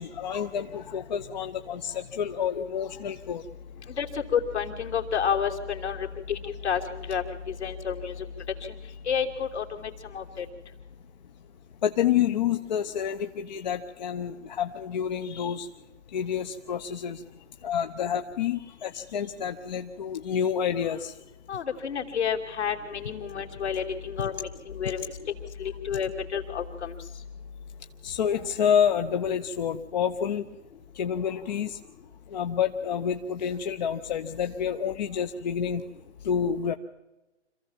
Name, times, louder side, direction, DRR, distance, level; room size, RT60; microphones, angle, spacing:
voice 1, 0.0-3.4 11.8-15.7 16.1-17.2 17.6-21.1 28.0-30.5 30.9-31.8 32.3-35.8 36.2-36.8, left 8 dB, 35° left, 7 dB, 0.8 m, -28 dB
voice 2, 4.0-6.8 7.1-7.2 7.6-8.1 9.1-10.4 21.5-25.1 25.6-26.9, left 7 dB, 65° left, 2 dB, 3.1 m, -30 dB
26.0 x 15.0 x 7.4 m, 1.0 s
figure-of-eight pair, 140°, 36 cm